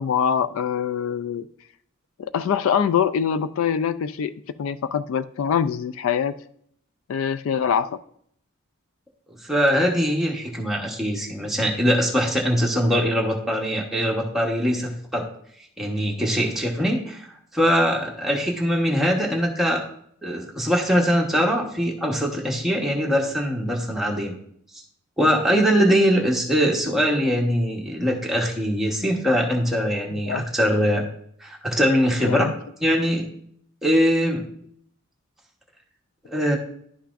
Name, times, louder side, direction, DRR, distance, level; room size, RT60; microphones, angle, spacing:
voice 1, 0.0-1.5 2.2-6.3 7.1-8.0 30.3-30.5 32.2-32.5, left 7 dB, 75° left, 14 dB, 0.3 m, -24 dB
voice 2, 9.4-15.3 15.8-17.3 17.5-19.8 20.2-24.4 25.2-31.0 31.4-32.5 32.8-33.2 33.8-34.4 36.2-36.6, equal, ahead, -2 dB, 1.0 m, -22 dB
11.0 x 5.7 x 2.5 m, 0.66 s
head